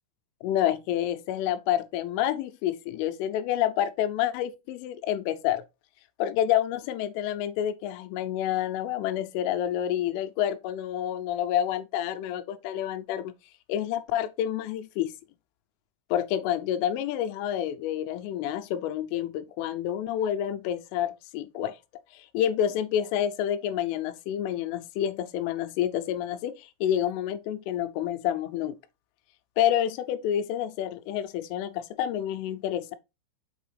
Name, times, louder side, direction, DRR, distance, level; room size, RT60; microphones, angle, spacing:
voice 1, 0.4-5.6 6.2-13.3 13.7-15.1 16.1-21.8 22.1-28.8 29.6-33.0, left 11 dB, 85° left, 3.1 m, -28 dB
6.9 x 5.5 x 3.2 m
omnidirectional pair, 5.8 m